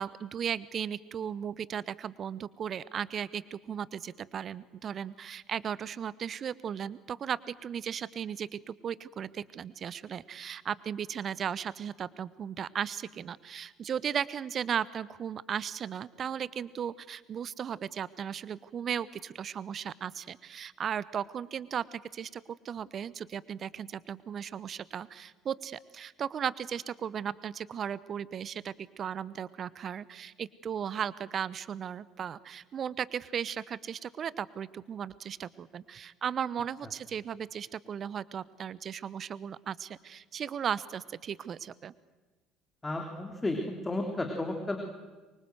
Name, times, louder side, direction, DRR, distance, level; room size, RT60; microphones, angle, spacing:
voice 1, 0.0-41.9, right 8 dB, 40° right, 20 dB, 0.9 m, -36 dB
voice 2, 42.8-43.6 43.8-44.8, left 2 dB, 15° left, 3 dB, 3.3 m, -32 dB
24.5 x 24.5 x 7.8 m, 1.2 s
figure-of-eight pair, 60°, 0 cm